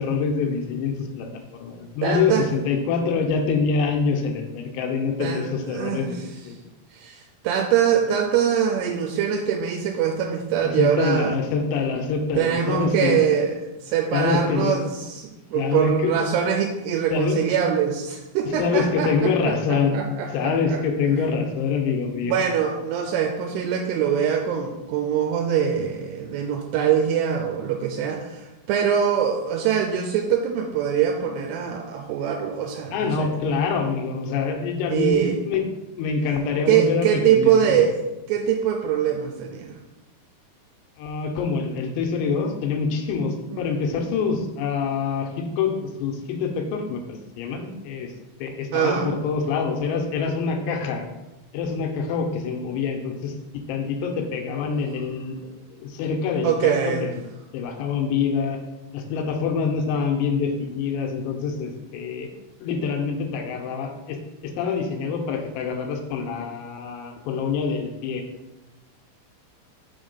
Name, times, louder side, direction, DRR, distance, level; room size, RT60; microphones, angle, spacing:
voice 1, 0.0-6.6 10.6-13.3 14.1-14.8 15.5-16.2 17.1-17.4 18.6-20.0 20.3-22.4 32.9-35.7 36.0-37.9 41.0-48.1 48.4-51.1 51.5-53.3 53.7-56.7 57.0-57.1 57.5-58.6 58.9-62.3 62.6-68.2, left 5 dB, 85° left, 3 dB, 2.9 m, -25 dB
voice 2, 2.0-2.5 5.2-6.2 6.9-11.4 12.4-20.8 22.2-33.3 34.9-35.4 36.7-39.8 43.5-43.7 48.7-49.1 56.4-57.1, right 8 dB, 85° right, 2 dB, 2.6 m, -23 dB
6.3 x 3.6 x 5.2 m, 1.0 s
omnidirectional pair, 4.8 m